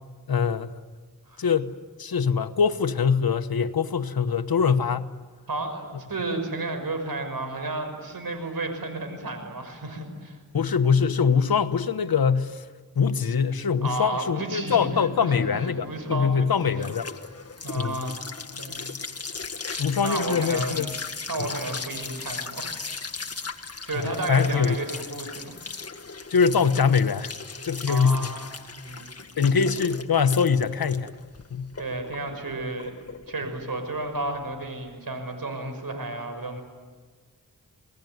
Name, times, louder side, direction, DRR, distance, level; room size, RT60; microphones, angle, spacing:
voice 1, 0.3-0.8 1.4-1.7 2.0-5.1 10.5-12.6 12.9-17.1 17.7-18.0 19.8-20.9 21.4-21.5 23.9-24.8 26.3-27.3 27.6-28.3 29.4-31.1 31.5-31.7, left 6 dB, 80° left, 1.3 m, -23 dB
voice 2, 5.5-10.4 13.8-16.8 17.6-18.2 18.6-18.9 19.6-20.9 21.3-22.7 23.3-23.5 23.8-25.6 27.9-28.5 28.8-29.1 31.8-32.9 33.3-36.6, right 2 dB, 70° right, 6.2 m, -32 dB
sound 1, 15.8-34.9, left 4 dB, 40° left, 1.7 m, -37 dB
28.5 x 19.5 x 9.6 m
cardioid pair, 55°, 36 cm